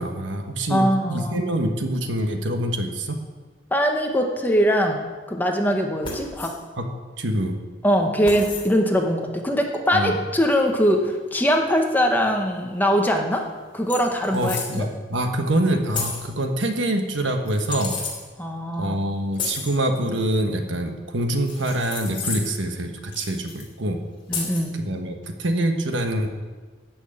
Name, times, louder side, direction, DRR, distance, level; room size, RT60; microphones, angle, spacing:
voice 1, 0.0-3.2 6.8-6.9 7.2-7.6 9.9-10.1 14.3-17.9 18.8-24.0 24.7-26.3, right 1 dB, 75° right, 5 dB, 1.3 m, -25 dB
voice 2, 0.7-1.4 3.7-5.0 5.3-6.5 7.8-13.4 13.7-14.8 18.4-19.0 24.3-24.8, equal, 10° left, 2 dB, 1.2 m, -22 dB
sound 1, 6.0-6.5 8.2-8.7 10.7-10.8 13.0-13.1 13.4-13.5 13.9-14.8 15.9-16.3 17.4-18.2 19.3-19.7 21.4-22.6 23.1-23.7 24.3-24.7, left 4 dB, 25° left, 3.1 m, -31 dB
13.5 x 6.4 x 8.9 m, 1.4 s
head